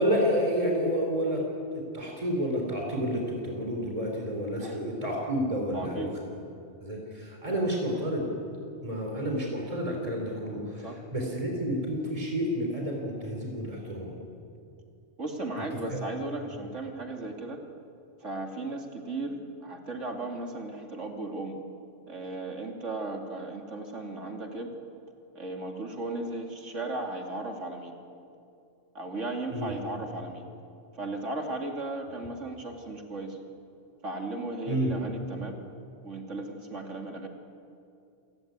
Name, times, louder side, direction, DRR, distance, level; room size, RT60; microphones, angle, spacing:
voice 1, 0.0-1.4 1.9-6.3 6.8-8.3 8.8-10.9 11.1-14.2 15.9-16.0 29.5-29.7 34.7-34.9, equal, 30° right, 0 dB, 3.8 m, -30 dB
voice 2, 5.7-6.1 10.8-11.0 15.2-17.6 18.2-21.6 22.1-24.7 25.3-27.9 28.9-30.5 30.9-33.4 34.0-35.6 36.0-37.3, right 2 dB, 85° right, 3 dB, 3.0 m, -36 dB
28.0 x 16.5 x 9.5 m, 2.6 s
omnidirectional pair, 1.2 m